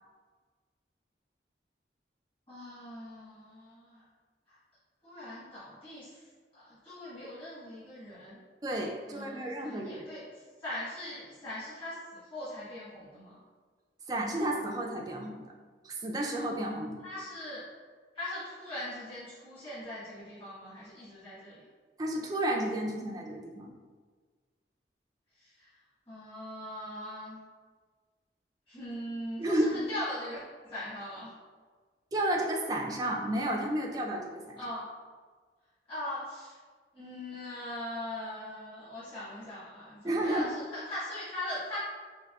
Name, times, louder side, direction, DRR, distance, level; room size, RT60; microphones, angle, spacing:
voice 1, 2.5-4.0 5.0-6.2 6.5-8.4 9.1-10.3 10.6-12.0 12.3-13.4 17.0-17.6 18.1-21.6 25.4-25.7 26.1-27.4 28.7-31.3 34.6-34.9 35.9-36.5 36.9-41.8, left 1 dB, 30° left, -12 dB, 1.3 m, -40 dB
voice 2, 8.6-10.1 14.1-15.4 15.8-17.0 22.0-23.7 29.4-29.8 32.1-34.6 40.0-40.5, right 1 dB, 20° right, -1 dB, 0.3 m, -32 dB
4.6 x 2.6 x 2.3 m, 1.5 s
head